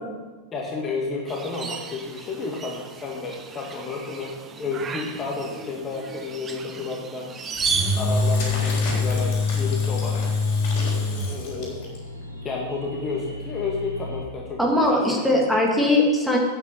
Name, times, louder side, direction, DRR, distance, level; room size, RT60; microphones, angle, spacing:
voice 1, 0.5-7.3 7.9-10.3 11.0-11.8 12.4-15.0, left 4 dB, 25° left, -1 dB, 1.8 m, -31 dB
sound 1, 1.3-8.0, right 5 dB, 20° right, 0.9 m, -34 dB
Engine / Drill, 7.4-12.0, left 3 dB, 50° left, 3.9 m, -24 dB
sound 2, 9.0-14.2, left 1 dB, 85° right, 1.6 m, -39 dB
voice 2, 14.6-16.4, left 1 dB, ahead, -2 dB, 2.3 m, -20 dB
9.1 x 8.8 x 6.9 m, 1.3 s
figure-of-eight pair, 90°, 0 cm